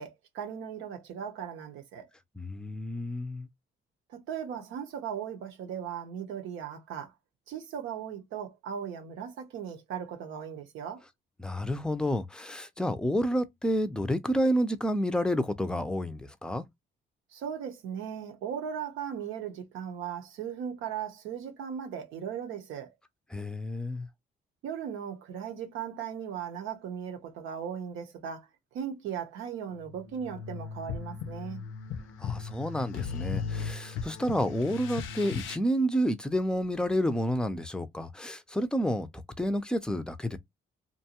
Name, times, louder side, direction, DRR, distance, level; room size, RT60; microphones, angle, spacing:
voice 1, 0.0-2.1 4.1-7.1 7.5-11.0 17.3-22.9 24.6-28.5 28.7-31.6, right 8 dB, 90° right, 0.8 m, -37 dB
voice 2, 2.4-3.5 11.4-16.7 23.3-24.1 32.2-39.1 39.4-40.4, equal, 5° left, 0.4 m, -29 dB
sound 1, 29.8-35.6, left 6 dB, 90° left, 0.5 m, -37 dB
2.6 x 2.2 x 2.8 m
cardioid pair, 90°, 20 cm